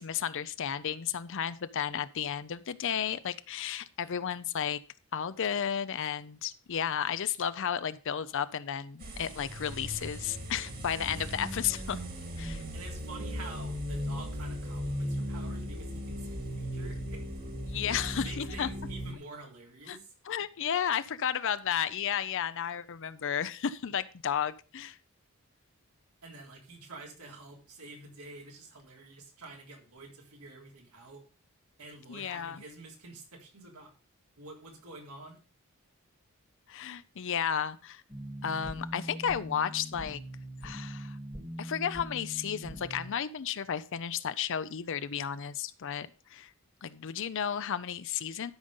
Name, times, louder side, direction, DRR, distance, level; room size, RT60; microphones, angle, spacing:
voice 1, 0.0-4.8 5.1-12.0 12.4-12.6 17.7-18.7 19.9-20.0 20.3-25.0 32.1-32.6 36.7-38.0 38.4-40.2 40.6-41.2 41.6-46.5 46.8-48.5, left 8 dB, 60° left, 14 dB, 0.5 m, -33 dB
sound 1, 9.0-19.1, equal, 40° right, 1.9 m, -37 dB
voice 2, 12.7-17.5 17.9-20.1 26.2-31.2 31.8-33.9 34.4-35.4, right 3 dB, 90° right, 0 dB, 3.6 m, -48 dB
sound 2, 38.1-43.1, equal, 20° right, 1.4 m, -42 dB
12.5 x 5.3 x 5.4 m, 0.35 s
head